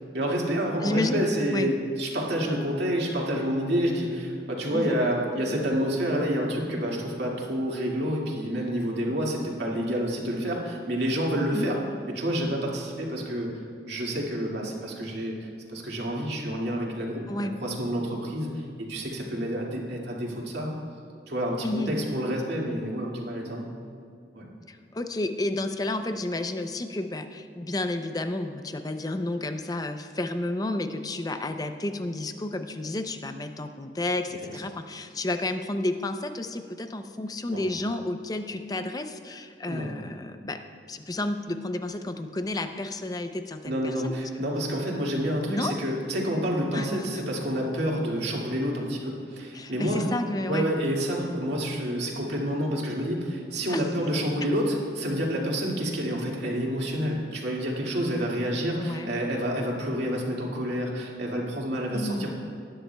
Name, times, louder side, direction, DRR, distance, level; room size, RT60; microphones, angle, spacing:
voice 1, 0.1-11.8 12.1-13.5 13.9-17.2 17.6-20.7 21.3-23.7 24.3-24.4 37.5-37.7 39.6-39.9 43.7-50.1 50.5-62.3, equal, 70° right, -3 dB, 2.1 m, -28 dB
voice 2, 0.8-1.2 1.5-1.7 4.7-5.0 11.5-11.7 17.3-17.5 21.6-21.9 24.7-40.6 40.9-44.1 45.5-45.7 46.7-47.2 49.5-50.7 53.7-53.8 58.8-59.1 61.9-62.3, left 2 dB, 20° left, 8 dB, 0.5 m, -31 dB
19.5 x 10.0 x 2.3 m, 2.5 s
head